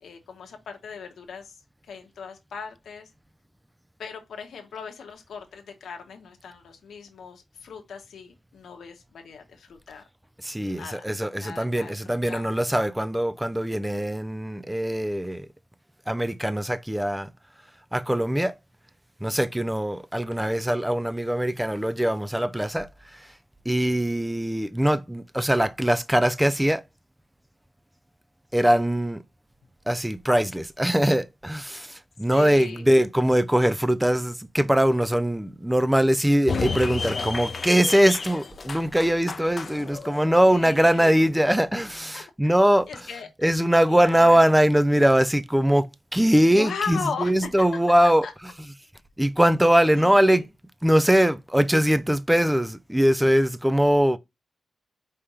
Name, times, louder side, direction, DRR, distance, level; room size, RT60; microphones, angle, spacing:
voice 1, 0.0-3.1 4.0-10.0 10.6-12.5 32.2-32.8 40.5-41.3 42.1-42.5 42.9-43.3 43.9-44.6 46.5-48.3 49.9-50.4, left 6 dB, 85° left, 1.1 m, -38 dB
voice 2, 10.4-15.5 16.1-17.3 17.9-18.5 19.2-23.3 23.7-26.8 28.5-29.2 29.9-45.9 46.1-48.7 49.2-50.5 50.8-54.2, equal, 5° right, 0.3 m, -22 dB
sound 1, 36.5-41.5, left 4 dB, 40° left, 0.6 m, -32 dB
4.9 x 3.4 x 2.8 m
wide cardioid pair, 150°, 0 cm